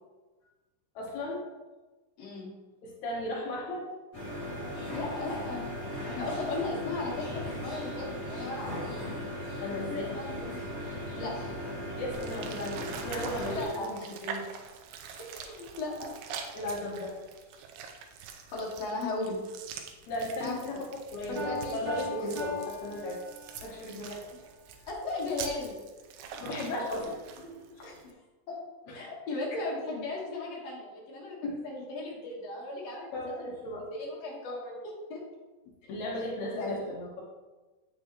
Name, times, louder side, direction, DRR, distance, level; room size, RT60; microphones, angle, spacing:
voice 1, 0.9-1.4 2.8-3.8 9.5-10.2 11.0-11.2 12.0-14.4 16.5-17.1 20.1-20.8 21.1-23.2 23.6-24.2 26.4-27.9 28.9-29.0 31.4-31.6 33.1-33.9 35.9-37.2, left 1 dB, 85° left, -3 dB, 1.6 m, -36 dB
voice 2, 2.2-2.5 4.9-5.7 6.1-8.7 9.8-10.6 11.1-11.3 13.4-14.1 15.2-16.1 18.3-19.4 20.4-20.6 21.3-21.8 22.2-22.3 24.9-25.7 27.8-28.0 28.5-28.6 28.9-31.4 31.6-33.1 33.4-35.2 36.6-36.8, left 2 dB, 55° left, -3 dB, 1.8 m, -36 dB
sound 1, 4.1-13.6, equal, 30° left, 1.7 m, -37 dB
sound 2, 12.1-28.1, right 6 dB, 80° right, 2.4 m, -45 dB
Piano, 21.4-23.8, left 1 dB, 60° right, 2.2 m, -39 dB
7.9 x 6.6 x 3.0 m, 1.2 s
omnidirectional pair, 5.0 m